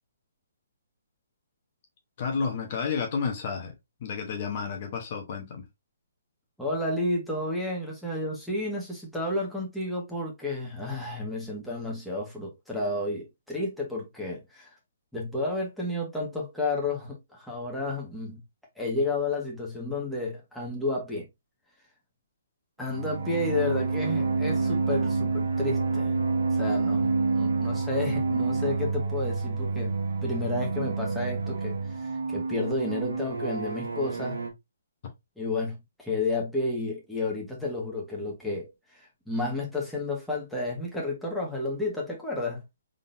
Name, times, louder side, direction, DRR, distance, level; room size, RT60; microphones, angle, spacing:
voice 1, 2.2-5.7, left 5 dB, 45° left, 1.1 m, -31 dB
voice 2, 6.6-14.7 15.1-18.4 18.8-21.2 22.8-26.2 26.5-30.0 30.2-34.4 35.4-42.6, left 2 dB, ahead, 1.5 m, -31 dB
sound 1, 22.8-34.5, right 4 dB, 80° right, 1.1 m, -28 dB
3.8 x 3.7 x 2.7 m
hypercardioid pair, 150°, 0 cm